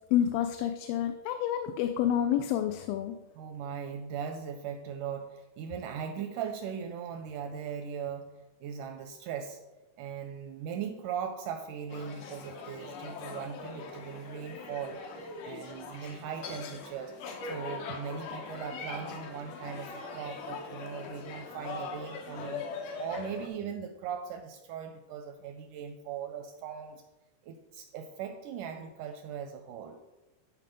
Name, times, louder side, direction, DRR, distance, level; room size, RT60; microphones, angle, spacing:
voice 1, 0.1-3.1, left 10 dB, 90° left, 7 dB, 2.4 m, -28 dB
voice 2, 3.4-8.3 8.6-9.6 10.0-17.2 17.4-22.7 23.0-27.0 27.4-30.0, right 7 dB, 80° right, 6 dB, 1.8 m, -39 dB
sound 1, 11.9-23.5, left 4 dB, 70° left, 2.3 m, -41 dB
11.5 x 4.7 x 5.2 m, 1.1 s
omnidirectional pair, 4.1 m